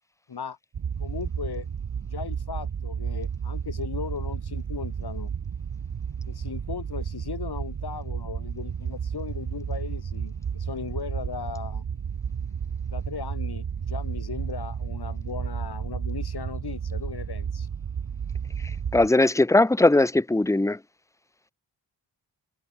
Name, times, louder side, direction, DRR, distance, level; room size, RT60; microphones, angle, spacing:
sound 1, 0.7-19.1, right 7 dB, 50° right, 1.4 m, -32 dB
voice 1, 1.0-1.7 2.0-5.3 6.3-11.8 12.9-17.7, left 6 dB, 55° left, 2.1 m, -37 dB
voice 2, 18.6-20.8, left 2 dB, 5° left, 0.8 m, -20 dB
open air
supercardioid pair, 40°, 45 cm